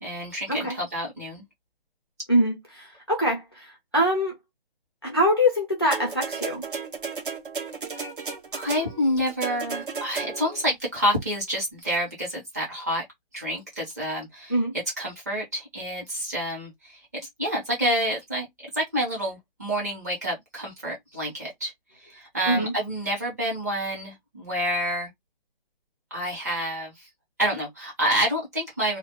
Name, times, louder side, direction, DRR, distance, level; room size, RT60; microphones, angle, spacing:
voice 1, 0.0-1.4 8.5-13.0 13.3-14.6 15.0-17.0 17.4-18.5 18.7-25.1 26.1-27.1 27.4-29.0, equal, 15° right, 0.8 m, -28 dB
voice 2, 2.3-4.3 5.0-6.6 14.5-14.7 22.5-22.7, equal, 25° left, 0.5 m, -24 dB
sound 1, 5.9-10.7 11.6-11.7, right 5 dB, 55° right, 1.0 m, -34 dB
2.4 x 2.2 x 2.8 m
figure-of-eight pair, 165°, 30 cm